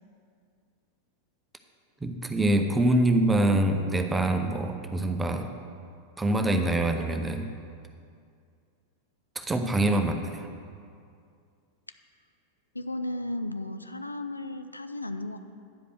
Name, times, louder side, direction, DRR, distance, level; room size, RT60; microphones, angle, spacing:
voice 1, 2.0-5.5 6.2-7.5 9.4-10.5, right 1 dB, 10° right, 6 dB, 0.7 m, -25 dB
voice 2, 12.7-15.4, left 1 dB, 85° left, 9 dB, 0.4 m, -34 dB
10.0 x 5.1 x 6.6 m, 2.3 s
figure-of-eight pair, 90°, 0 cm